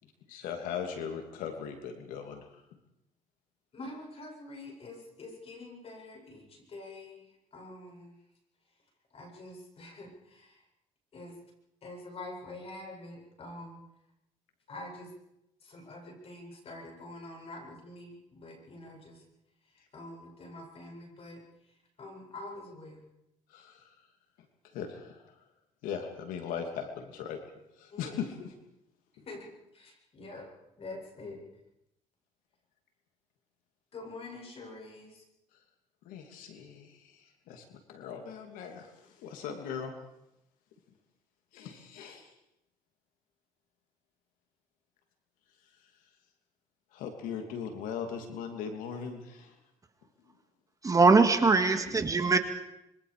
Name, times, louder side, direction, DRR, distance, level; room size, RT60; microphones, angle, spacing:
voice 1, 0.0-2.8 23.5-24.1 24.6-25.4 25.8-27.4 27.7-28.5 29.2-29.3 35.5-35.6 36.0-39.9 41.5-42.3 45.6-46.0 46.9-49.6 50.2-50.3, left 7 dB, 90° left, 5 dB, 3.0 m, -40 dB
voice 2, 3.7-7.3 7.5-8.1 9.1-10.6 11.1-11.3 11.8-13.8 14.7-15.1 15.6-19.2 19.9-21.4 22.0-23.1 27.9-28.3 29.3-30.5 30.8-31.4 33.9-35.2, left 2 dB, 45° left, 1 dB, 7.8 m, -46 dB
voice 3, 50.8-52.4, right 4 dB, 25° right, 7 dB, 2.1 m, -22 dB
26.0 x 23.5 x 5.1 m, 0.84 s
cardioid pair, 105°, 14 cm